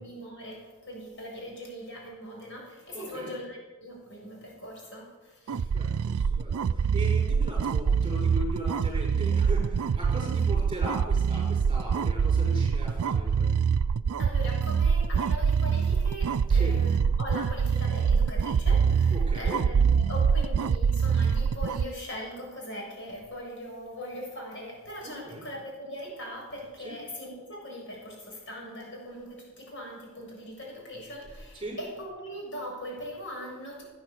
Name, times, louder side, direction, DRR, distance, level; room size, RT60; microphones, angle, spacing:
voice 1, 0.0-5.7 10.3-10.4 11.3-11.5 14.2-33.8, equal, 55° left, -1 dB, 7.1 m, -40 dB
voice 2, 2.9-3.3 5.5-13.5 16.5-16.8 19.1-19.6 25.0-25.5 26.8-27.0 31.5-31.8, equal, 25° right, -1 dB, 5.7 m, -38 dB
sound 1, 5.5-21.9, right 6 dB, 85° right, 0.4 m, -25 dB
17.5 x 9.6 x 8.3 m, 1.2 s
head